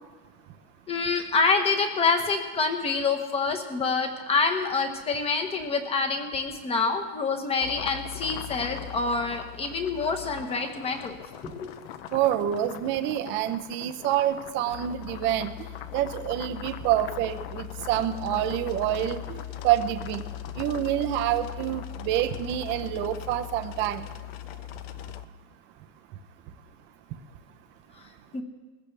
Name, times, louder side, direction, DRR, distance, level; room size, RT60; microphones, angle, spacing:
voice 1, 0.9-11.2 11.4-11.7 28.0-28.4, left 4 dB, 15° left, 6 dB, 1.2 m, -27 dB
sound 1, 7.6-25.3, left 12 dB, 45° left, 0.7 m, -39 dB
voice 2, 12.1-15.5 15.9-20.2 20.6-24.1, right 12 dB, 30° right, 8 dB, 0.7 m, -27 dB
21.0 x 15.0 x 3.4 m, 1.3 s
supercardioid pair, 160°, 41 cm